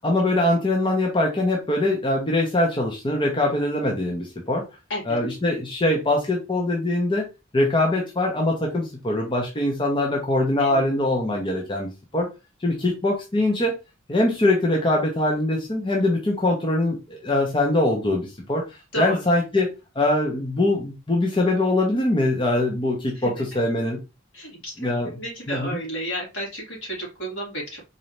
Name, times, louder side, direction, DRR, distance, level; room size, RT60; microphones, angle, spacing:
voice 1, 0.0-4.7 5.1-7.3 7.5-12.3 12.6-13.7 14.1-18.6 19.0-19.7 20.0-24.0 24.8-25.1 25.5-25.8, left 1 dB, 25° left, 0 dB, 0.8 m, -22 dB
voice 2, 24.3-24.7 25.0-27.8, right 1 dB, 70° left, -3 dB, 2.4 m, -32 dB
4.0 x 2.7 x 3.2 m, 0.26 s
head